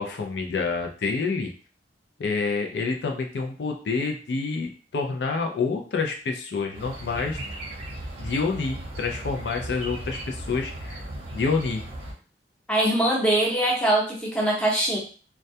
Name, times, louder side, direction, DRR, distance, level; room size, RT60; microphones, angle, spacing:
voice 1, 0.0-1.5 2.2-7.4 8.2-11.0 11.3-11.8, left 4 dB, 70° left, 3 dB, 0.4 m, -28 dB
sound 1, 6.7-12.1, right 1 dB, 35° right, 0.7 m, -37 dB
voice 2, 12.7-15.0, right 1 dB, 5° left, -4 dB, 0.6 m, -22 dB
2.2 x 2.2 x 2.7 m, 0.38 s
head